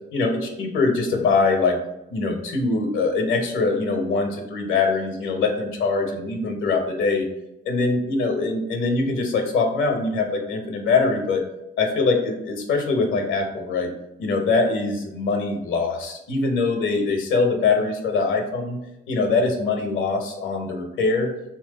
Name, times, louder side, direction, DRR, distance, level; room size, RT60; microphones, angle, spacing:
voice 1, 0.1-1.8 2.1-7.3 7.6-11.4 11.8-13.9 14.2-18.8 19.1-21.3, left 3 dB, 80° left, 3 dB, 1.0 m, -23 dB
3.2 x 3.1 x 3.9 m, 0.87 s
cardioid pair, 90°, 20 cm